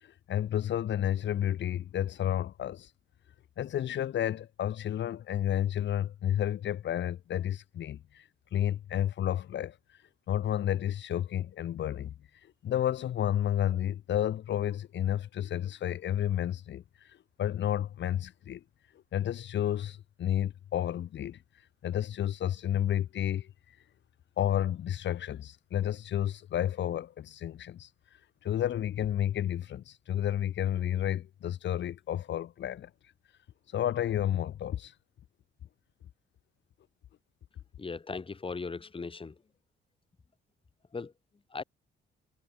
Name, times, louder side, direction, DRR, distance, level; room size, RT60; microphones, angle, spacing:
voice 1, 0.0-2.9 3.6-9.8 10.3-12.1 12.4-18.6 19.1-21.4 21.8-23.8 24.4-27.9 28.4-32.9 33.7-34.9, left 11 dB, 65° left, 1.6 m, -31 dB
voice 2, 37.8-39.4 40.9-41.1 41.5-41.6, left 4 dB, 25° left, 2.5 m, -38 dB
cardioid pair, 90°, 20 cm